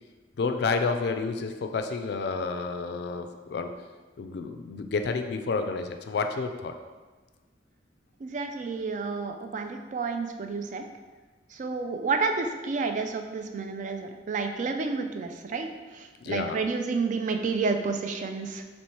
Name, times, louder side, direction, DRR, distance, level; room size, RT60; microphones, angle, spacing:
voice 1, 0.4-3.7 4.2-6.7 16.2-16.6, left 4 dB, 60° left, 7 dB, 0.3 m, -30 dB
voice 2, 8.2-10.9 11.5-18.6, right 4 dB, 40° right, 6 dB, 0.3 m, -30 dB
3.1 x 3.0 x 4.3 m, 1.3 s
head